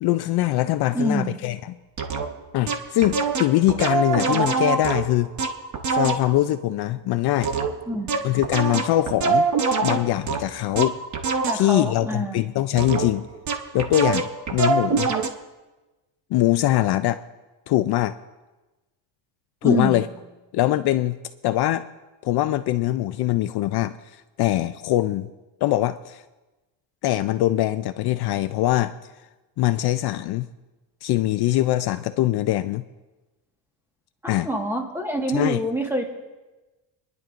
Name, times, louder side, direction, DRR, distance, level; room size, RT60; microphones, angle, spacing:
voice 1, 0.0-1.8 2.5-5.3 5.9-7.5 8.2-9.5 9.8-11.0 11.5-13.3 13.7-15.1 16.3-17.2 17.7-18.2 19.6-20.1 20.5-21.2 21.4-21.9 22.2-25.3 25.6-26.2 27.0-29.0 29.6-30.5 31.0-32.8 34.3-34.5 35.3-35.6, left 15 dB, 60° left, 0.5 m, -22 dB
voice 2, 0.9-1.4 7.9-8.1 11.4-12.4 19.6-20.0 34.2-36.0, right 1 dB, 5° right, 1.5 m, -26 dB
sound 1, 2.0-2.3 2.7-6.4 7.4-11.9 12.8-13.2 13.5-15.3, right 5 dB, 40° right, 0.9 m, -24 dB
25.5 x 10.5 x 2.5 m
cardioid pair, 140°, 45 cm